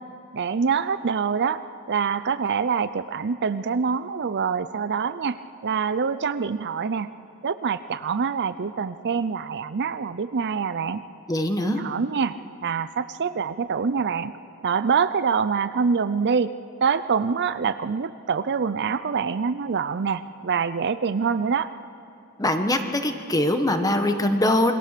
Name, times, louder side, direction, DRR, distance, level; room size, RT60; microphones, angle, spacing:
voice 1, 0.3-1.6 1.9-5.4 5.6-7.1 7.4-11.0 11.6-12.3 12.6-14.3 14.6-16.5 16.8-21.7, right 6 dB, 50° right, 13 dB, 0.5 m, -25 dB
voice 2, 11.3-11.8 22.4-24.7, left 1 dB, 15° left, 6 dB, 1.3 m, -22 dB
27.5 x 22.0 x 6.7 m, 2.6 s
head